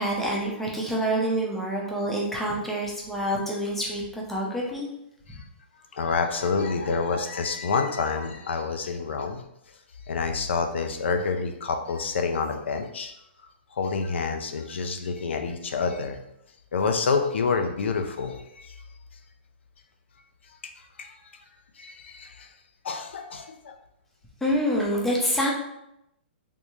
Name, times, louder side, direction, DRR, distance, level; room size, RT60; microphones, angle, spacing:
voice 1, 0.0-4.9 6.8-7.0 24.4-25.5, equal, 5° left, -3 dB, 0.6 m, -27 dB
voice 2, 5.9-9.4 10.1-13.1 13.8-16.2 16.7-18.7 20.6-20.7 21.0-21.1 21.8-22.5 22.8-23.8, left 5 dB, 80° left, 5 dB, 0.4 m, -28 dB
3.5 x 2.6 x 3.0 m, 0.81 s
hypercardioid pair, 155°, 6 cm